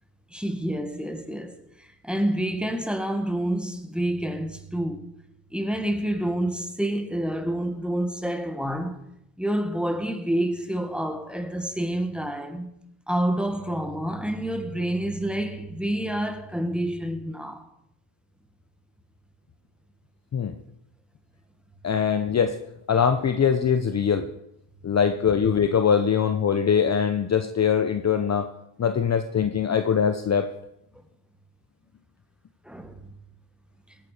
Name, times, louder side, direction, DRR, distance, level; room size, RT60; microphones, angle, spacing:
voice 1, 0.3-5.0 5.5-9.0 9.4-12.7 13.1-17.7 32.6-33.1, right 1 dB, ahead, 1.8 m, -28 dB
voice 2, 21.8-22.6 22.9-24.3 24.8-28.5 28.8-30.5, left 7 dB, 30° left, 0.9 m, -22 dB
17.0 x 9.2 x 5.0 m
cardioid pair, 90°, 50 cm